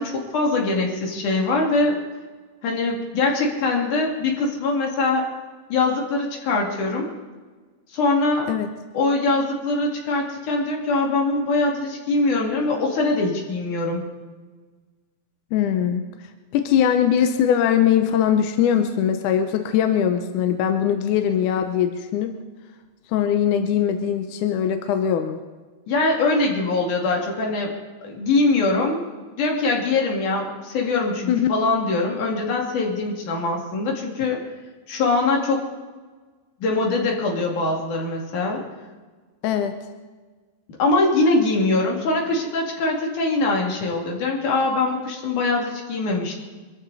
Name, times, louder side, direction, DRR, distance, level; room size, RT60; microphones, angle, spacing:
voice 1, 0.0-2.0 2.6-5.2 5.7-7.1 7.9-8.5 8.9-14.0 25.9-27.7 28.0-34.4 34.9-35.7 36.6-38.6 40.8-46.3, left 3 dB, 55° left, 0 dB, 3.8 m, -22 dB
voice 2, 15.5-16.0 16.5-22.4 23.1-25.4 31.3-31.5 39.4-39.8, left 9 dB, 75° left, 7 dB, 1.9 m, -21 dB
24.0 x 14.5 x 4.1 m, 1.4 s
omnidirectional pair, 4.4 m